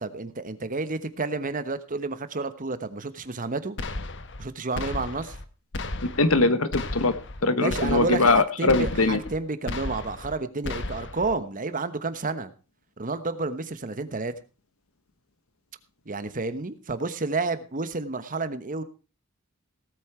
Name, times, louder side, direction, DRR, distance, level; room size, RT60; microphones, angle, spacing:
voice 1, 0.0-3.8 4.4-5.4 7.5-12.5 13.0-14.3 16.1-18.8, right 3 dB, 40° right, 12 dB, 1.2 m, -30 dB
sound 1, 3.8-4.5 4.7-5.4 5.7-6.4 6.7-7.4 7.7-8.4 8.7-9.4 9.7-10.4 10.6-11.3, left 2 dB, 60° left, 1.2 m, -34 dB
voice 2, 6.0-7.1 7.4-9.2, left 3 dB, 85° left, 11 dB, 1.4 m, -21 dB
18.0 x 8.5 x 4.5 m, 0.33 s
head